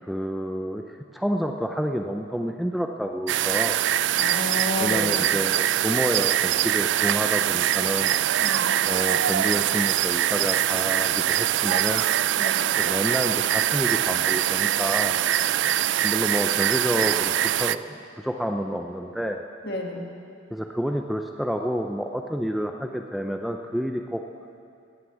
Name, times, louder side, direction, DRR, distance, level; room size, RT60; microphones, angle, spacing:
voice 1, 0.0-3.8 4.8-8.1 8.8-12.1 12.8-15.2 16.0-19.4 20.5-24.2, equal, ahead, 3 dB, 0.4 m, -29 dB
sound 1, 3.3-17.8, right 12 dB, 65° right, 0.3 m, -23 dB
voice 2, 4.2-5.3 8.4-8.7 12.4-12.6 19.6-20.0, left 2 dB, 55° left, 1 dB, 1.8 m, -31 dB
17.0 x 9.7 x 7.2 m, 2.4 s
head